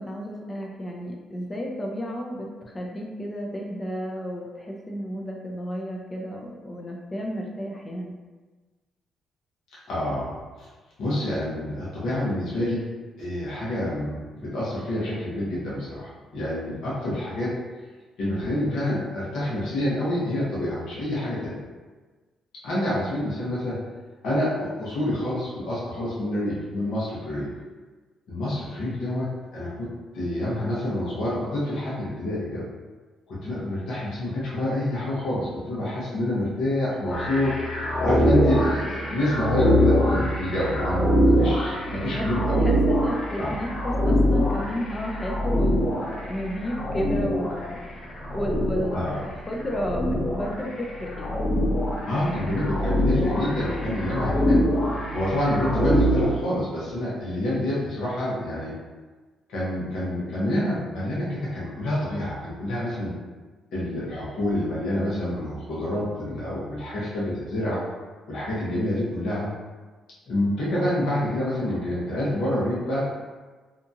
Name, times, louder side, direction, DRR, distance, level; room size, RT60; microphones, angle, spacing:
voice 1, 0.0-8.1 41.8-49.2 49.5-51.5, equal, 25° left, -1 dB, 0.5 m, -32 dB
voice 2, 9.9-10.7 11.0-12.8 13.2-17.5 18.2-21.6 22.6-23.8 24.2-27.5 28.3-29.9 30.1-32.7 33.3-37.5 38.0-42.6 43.4-43.5 48.9-49.2 52.0-54.7 55.1-58.8 59.5-63.1 63.7-67.8 68.3-69.5 70.3-73.0, left 1 dB, 75° left, -8 dB, 1.0 m, -27 dB
sound 1, 37.1-56.3, equal, 50° left, 1.0 m, -24 dB
2.8 x 2.4 x 2.6 m, 1.3 s
cardioid pair, 90°, 0 cm